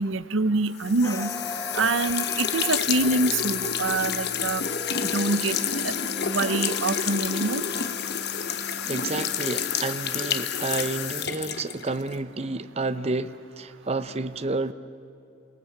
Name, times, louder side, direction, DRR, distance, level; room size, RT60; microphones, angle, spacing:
voice 1, 0.0-1.3 1.7-4.6 5.1-5.6 5.8-5.9 6.2-7.6, right 3 dB, 80° right, 15 dB, 0.8 m, -25 dB
sound 1, 0.8-12.2, left 8 dB, 55° left, 1.1 m, -29 dB
sound 2, 1.0-9.8, left 2 dB, 15° left, 0.8 m, -39 dB
sound 3, 4.6-11.1, left 5 dB, 85° left, 1.4 m, -42 dB
voice 2, 8.9-14.7, right 3 dB, 30° right, 11 dB, 0.7 m, -30 dB
28.0 x 19.0 x 8.6 m, 2.7 s
head